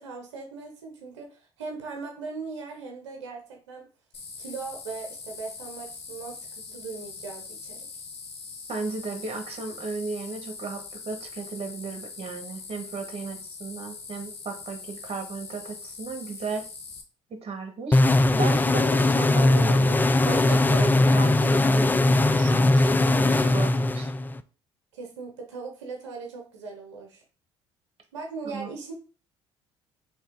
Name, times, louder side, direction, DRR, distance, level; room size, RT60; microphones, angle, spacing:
voice 1, 0.0-3.9 4.4-7.8 22.8-23.5 24.9-27.2 28.1-28.9, right 4 dB, 90° right, 2 dB, 0.8 m, -39 dB
sound 1, 4.1-17.0, left 5 dB, 45° left, 1.0 m, -42 dB
voice 2, 8.7-16.6 17.3-18.0 18.3-24.1 28.4-28.7, right 4 dB, 45° right, 6 dB, 1.2 m, -35 dB
sound 2, 17.9-24.4, left 2 dB, 15° left, 0.3 m, -20 dB
3.3 x 3.0 x 4.5 m, 0.37 s
hypercardioid pair, 60°, 15 cm